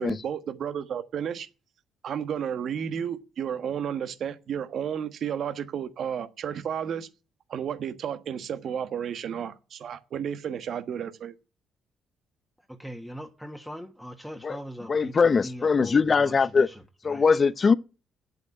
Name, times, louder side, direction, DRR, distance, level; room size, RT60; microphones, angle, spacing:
voice 1, 0.0-1.5 2.0-7.1 7.5-11.3, right 8 dB, 65° right, 1.3 m, -32 dB
voice 2, 12.7-17.3, equal, ahead, 1.7 m, -41 dB
voice 3, 14.9-16.7 17.0-17.7, left 5 dB, 45° left, 0.7 m, -21 dB
9.0 x 8.0 x 8.9 m
hypercardioid pair, 55°, 0 cm